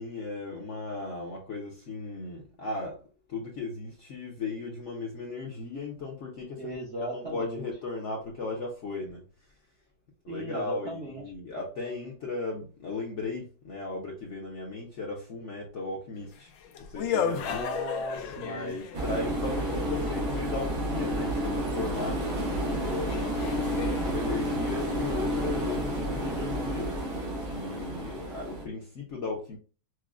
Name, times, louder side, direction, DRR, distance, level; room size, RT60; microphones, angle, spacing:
voice 1, 0.0-3.0 3.3-6.7 7.1-9.2 10.2-16.5 16.9-17.6 18.4-23.4 24.0-27.1 27.4-29.6, left 3 dB, 60° left, 0.8 m, -36 dB
voice 2, 6.6-7.7 10.3-11.2 17.4-18.8 19.2-19.3, right 1 dB, 55° right, 0.8 m, -37 dB
sound 1, 16.3-20.5 22.4-22.5 23.1-25.5, left 7 dB, 85° left, 1.3 m, -35 dB
sound 2, 18.9-28.6, right 1 dB, 85° right, 1.9 m, -30 dB
6.0 x 2.0 x 2.4 m
omnidirectional pair, 2.0 m